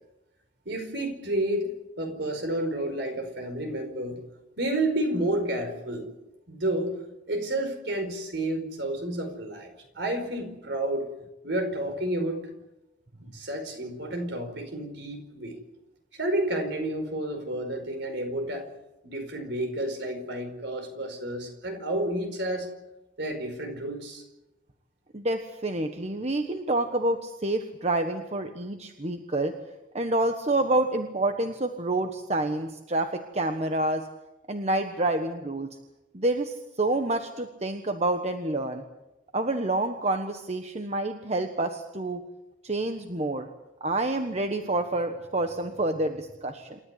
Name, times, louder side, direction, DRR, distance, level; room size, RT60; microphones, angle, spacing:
voice 1, 0.6-1.7 2.0-4.2 4.6-6.1 6.5-7.0 7.3-11.1 11.4-12.4 13.2-15.6 16.1-18.7 19.0-22.7 23.2-24.2, right 1 dB, 60° right, 6 dB, 4.9 m, -30 dB
voice 2, 25.1-29.5 29.9-34.0 34.5-35.7 36.1-38.8 39.3-42.2 42.6-43.5 43.8-46.8, right 2 dB, 35° right, 6 dB, 1.3 m, -28 dB
28.0 x 13.5 x 9.8 m, 0.98 s
head